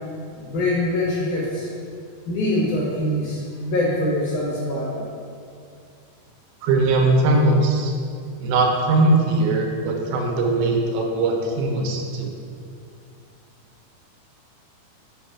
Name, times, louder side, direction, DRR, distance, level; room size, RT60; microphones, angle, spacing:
voice 1, 0.3-1.7 2.3-5.1, left 1 dB, 75° left, -5 dB, 1.8 m, -24 dB
voice 2, 6.6-7.9 8.4-12.3, right 2 dB, 85° right, 1 dB, 2.6 m, -20 dB
5.9 x 3.1 x 5.6 m, 2.4 s
omnidirectional pair, 4.4 m